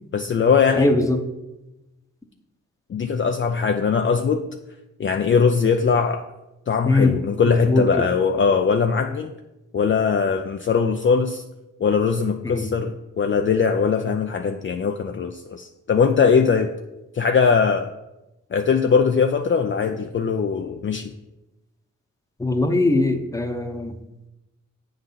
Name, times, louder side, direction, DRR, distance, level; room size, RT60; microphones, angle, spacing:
voice 1, 0.1-0.9 2.9-4.4 5.0-6.2 6.7-9.3 9.7-11.4 11.8-16.7 17.1-17.9 18.5-21.1, left 5 dB, 40° left, 5 dB, 0.4 m, -20 dB
voice 2, 0.7-1.2 6.8-7.2 7.5-8.1 12.4-12.7 22.4-24.0, left 2 dB, 10° left, 5 dB, 0.8 m, -21 dB
7.9 x 3.9 x 5.6 m, 0.98 s
cardioid pair, 70°, 31 cm